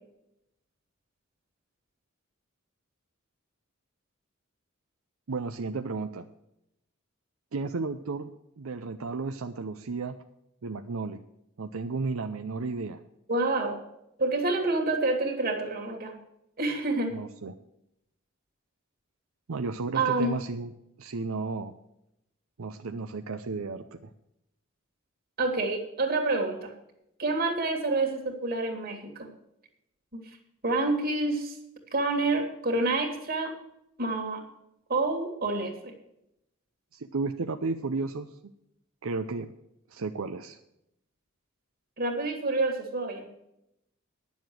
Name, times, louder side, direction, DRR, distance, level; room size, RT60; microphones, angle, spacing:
voice 1, 5.3-6.3 7.5-8.3 8.6-10.2 10.6-11.2 11.6-13.0 17.1-17.6 19.5-20.7 21.0-21.7 22.6-24.1 36.9-38.3 39.0-39.5 39.9-40.6, right 4 dB, 80° right, 7 dB, 0.6 m, -33 dB
voice 2, 13.3-13.8 14.2-16.1 16.6-17.2 19.9-20.3 25.4-26.7 27.2-29.3 30.1-30.2 30.6-31.6 31.9-33.5 34.0-34.4 34.9-35.9 42.0-43.3, right 2 dB, 45° right, 3 dB, 2.3 m, -28 dB
10.5 x 7.2 x 7.7 m, 0.82 s
head